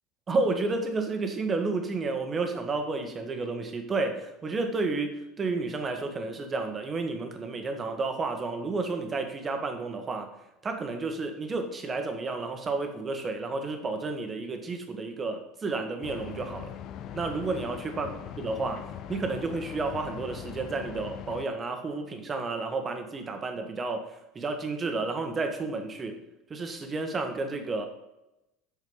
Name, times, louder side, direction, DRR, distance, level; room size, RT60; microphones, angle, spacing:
voice 1, 0.3-10.3 10.6-16.7 17.1-18.1 18.4-26.2 26.5-27.9, right 3 dB, 25° right, 5 dB, 1.5 m, -31 dB
sound 1, 16.0-21.5, left 10 dB, 50° left, 0.7 m, -41 dB
8.1 x 6.5 x 5.5 m, 0.92 s
supercardioid pair, 130°, 0 cm